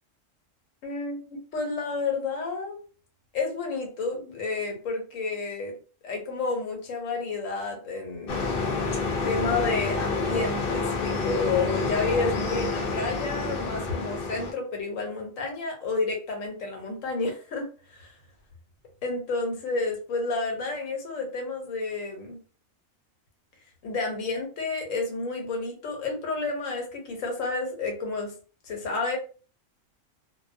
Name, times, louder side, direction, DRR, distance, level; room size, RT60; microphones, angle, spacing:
voice 1, 0.8-2.8 3.3-5.7 6.0-8.4 9.2-18.1 19.0-22.4 23.8-28.3 28.6-29.2, left 3 dB, 90° left, 2 dB, 1.2 m, -30 dB
sound 1, 8.3-14.5, left 3 dB, 60° left, 0.6 m, -28 dB
2.4 x 2.0 x 2.5 m, 0.38 s
omnidirectional pair, 1.3 m